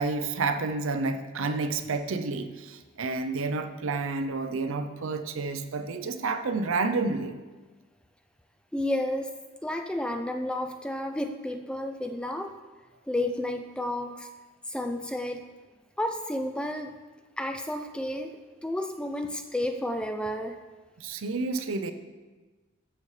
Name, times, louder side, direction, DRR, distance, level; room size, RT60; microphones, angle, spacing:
voice 1, 0.0-7.4 21.0-21.9, right 3 dB, 75° right, 9 dB, 0.6 m, -30 dB
voice 2, 8.7-9.3 9.6-12.5 13.1-14.3 14.7-15.4 16.0-16.9 17.4-20.6, left 1 dB, 5° left, 6 dB, 0.3 m, -31 dB
12.0 x 6.7 x 3.2 m, 1.3 s
head